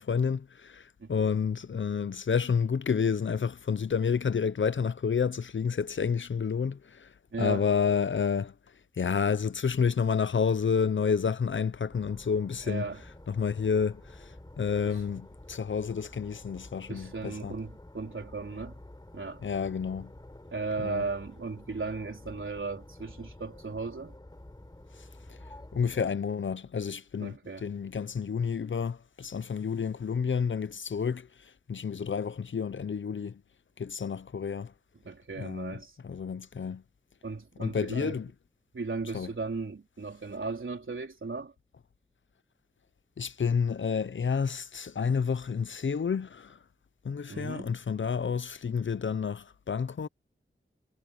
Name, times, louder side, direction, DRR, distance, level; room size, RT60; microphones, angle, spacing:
voice 1, 0.0-8.5 9.0-12.9 13.3-17.5 19.4-20.1 20.8-21.0 25.3-25.4 25.7-33.4 33.8-34.7 35.3-36.8 37.6-38.3 39.1-39.3 43.2-46.6 47.0-50.1, left 6 dB, 70° left, 0.7 m, -30 dB
voice 2, 7.3-7.6 12.6-13.0 14.8-15.0 16.9-18.8 19.1-19.4 20.5-24.2 27.2-27.7 35.0-35.9 37.2-38.2 38.7-41.5 47.3-47.7, right 4 dB, 70° right, 4.0 m, -36 dB
sound 1, 11.9-26.1, left 1 dB, 20° left, 5.0 m, -50 dB
wide cardioid pair, 85°, 21 cm